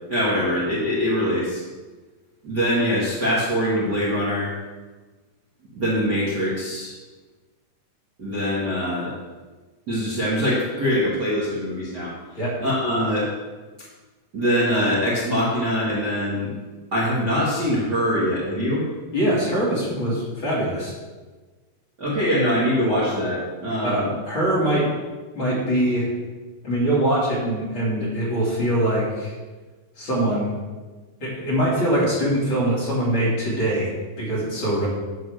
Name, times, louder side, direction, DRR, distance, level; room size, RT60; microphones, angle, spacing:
voice 1, 0.1-1.6 2.4-4.5 5.7-6.9 8.2-9.1 9.9-12.2 12.6-13.3 14.3-16.5 16.9-18.8 22.0-24.1, equal, 35° right, -8 dB, 1.8 m, -23 dB
voice 2, 19.1-20.9 23.8-24.9 25.3-26.1 26.6-29.4 30.0-30.5 31.2-34.9, right 1 dB, 35° left, -8 dB, 3.3 m, -23 dB
10.5 x 4.1 x 6.5 m, 1.3 s
omnidirectional pair, 4.3 m